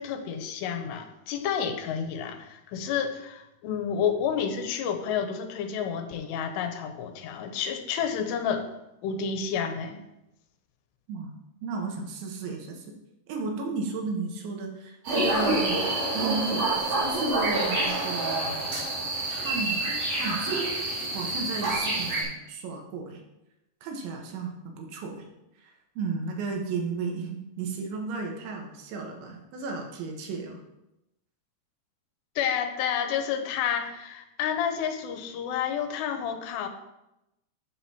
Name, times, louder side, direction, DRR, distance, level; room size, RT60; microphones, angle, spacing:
voice 1, 0.0-8.6 9.0-10.0 32.4-36.7, left 7 dB, 80° left, 6 dB, 2.7 m, -30 dB
voice 2, 11.1-12.9 13.3-15.8 16.1-18.8 19.3-19.8 20.1-20.7 21.1-23.2 23.8-25.3 25.6-30.6, right 4 dB, 80° right, 2 dB, 3.6 m, -34 dB
sound 1, 15.0-22.2, right 2 dB, 45° right, 4.4 m, -27 dB
13.5 x 7.6 x 2.9 m, 0.91 s
omnidirectional pair, 5.3 m